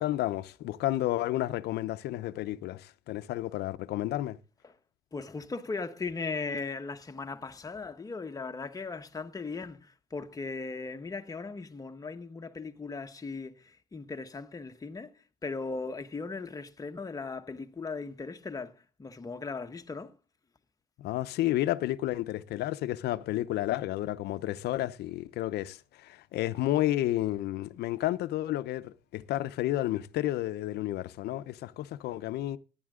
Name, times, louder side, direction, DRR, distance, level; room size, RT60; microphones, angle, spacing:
voice 1, 0.0-4.4 21.0-32.6, left 15 dB, 75° left, 0.8 m, -31 dB
voice 2, 5.1-15.1 15.4-20.1, left 4 dB, 20° left, 1.2 m, -38 dB
14.5 x 11.0 x 3.8 m
cardioid pair, 110°, 17 cm